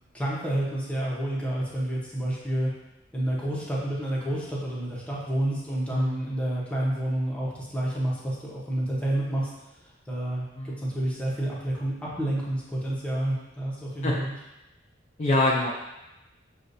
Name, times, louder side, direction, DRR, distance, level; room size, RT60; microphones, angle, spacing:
voice 1, 0.1-2.7 3.1-9.5 10.1-14.3, right 1 dB, 5° left, -6 dB, 0.9 m, -29 dB
voice 2, 5.9-6.2 10.6-10.8 14.0-14.2 15.2-15.7, left 2 dB, 35° left, -4 dB, 0.5 m, -25 dB
6.5 x 2.4 x 2.6 m, 0.95 s
head